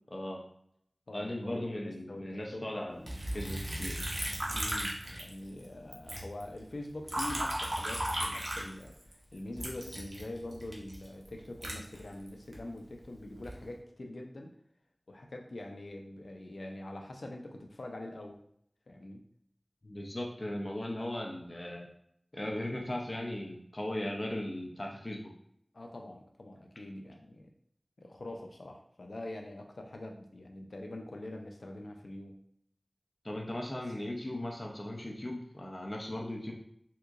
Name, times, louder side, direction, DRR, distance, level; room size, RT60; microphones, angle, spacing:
voice 1, 0.1-0.4 1.1-4.1 19.8-21.9 22.3-25.3 33.2-36.5, left 1 dB, 45° left, 0 dB, 0.6 m, -38 dB
voice 2, 1.1-2.7 4.4-14.5 15.1-18.4 18.9-19.2 25.7-27.5 28.0-32.4, left 1 dB, 90° left, 2 dB, 0.5 m, -44 dB
Liquid, 3.1-5.6 5.9-9.1 9.6-12.6 13.1-13.7, right 1 dB, 55° right, 0.8 m, -36 dB
3.6 x 2.8 x 2.5 m, 0.69 s
wide cardioid pair, 50°, 0 cm